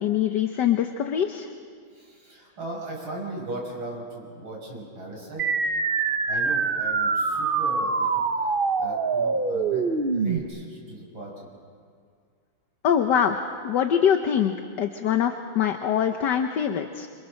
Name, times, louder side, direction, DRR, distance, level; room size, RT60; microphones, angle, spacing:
voice 1, 0.0-1.5 12.8-13.4 13.6-17.1, left 8 dB, 60° left, 6 dB, 1.5 m, -23 dB
voice 2, 1.9-5.5 6.3-8.1 8.8-9.8 10.1-11.5, right 1 dB, 75° right, -2 dB, 6.9 m, -37 dB
sound 1, 5.4-10.4, right 4 dB, 40° right, 0.8 m, -24 dB
27.0 x 26.5 x 6.5 m, 2.1 s
omnidirectional pair, 2.3 m